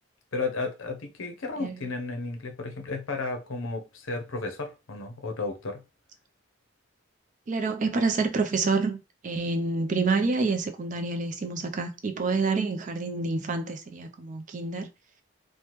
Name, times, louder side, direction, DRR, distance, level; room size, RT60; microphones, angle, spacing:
voice 1, 0.3-5.8, left 3 dB, 80° left, 0.7 m, -33 dB
voice 2, 7.5-14.9, right 3 dB, 40° right, 0.4 m, -28 dB
3.3 x 2.1 x 2.9 m
head